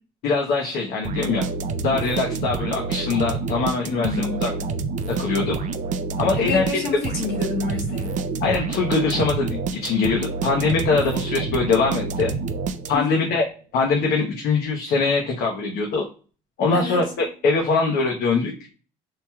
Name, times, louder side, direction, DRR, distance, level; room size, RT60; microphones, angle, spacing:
voice 1, 0.2-1.5 1.8-4.5 5.1-5.6 6.2-6.6 8.4-12.3 12.9-13.4 13.7-16.0 16.6-18.5, left 4 dB, 70° left, 0.8 m, -22 dB
sound 1, 1.0-13.2, right 4 dB, 50° right, 0.4 m, -28 dB
voice 2, 3.9-4.7 6.3-8.3 12.9-13.3 16.7-17.1, left 4 dB, 85° left, 1.1 m, -28 dB
3.0 x 2.8 x 2.3 m
cardioid pair, 110°, 17 cm